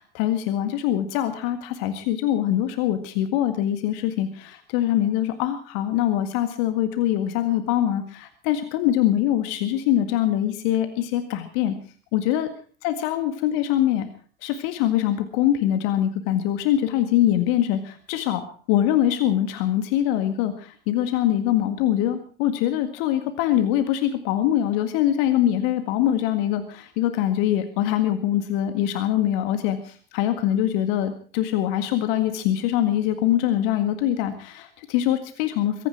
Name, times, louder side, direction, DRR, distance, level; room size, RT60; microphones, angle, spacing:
voice 1, 0.0-11.7 12.1-12.5 12.8-14.1 14.4-18.4 18.7-35.9, left 12 dB, 50° left, 9 dB, 1.9 m, -23 dB
23.5 x 10.0 x 6.0 m, 0.43 s
figure-of-eight pair, 75°, 29 cm